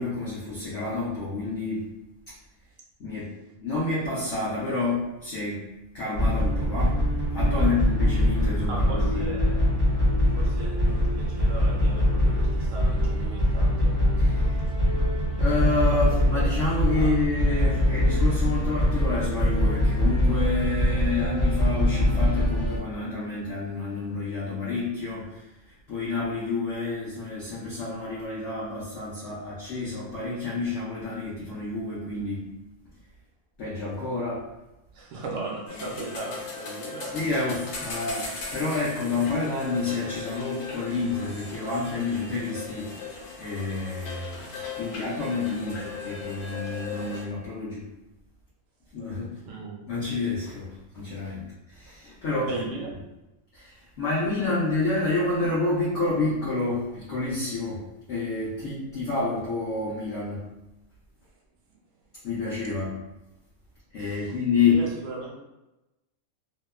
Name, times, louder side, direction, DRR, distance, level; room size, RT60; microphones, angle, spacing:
voice 1, 0.0-1.9 2.3-2.4 3.0-3.3 3.6-5.7 5.9-7.0 7.3-9.3 14.2-14.6 15.4-32.5 33.6-34.5 35.8-35.9 37.1-43.0 43.4-47.9 48.9-49.4 49.9-52.6 53.5-60.5 62.2-63.0 63.9-64.9, left 3 dB, 60° left, -7 dB, 0.8 m, -29 dB
sound 1, 6.1-22.8, left 1 dB, 25° right, 0.8 m, -23 dB
voice 2, 8.7-9.7 10.3-14.0 14.7-14.9 15.9-17.2 34.9-37.6 49.4-49.8 52.5-53.0 64.0-65.4, right 3 dB, 70° right, -2 dB, 0.9 m, -38 dB
sound 2, 35.7-47.2, left 4 dB, 90° left, 1.2 m, -38 dB
2.8 x 2.2 x 2.2 m, 0.98 s
omnidirectional pair, 1.5 m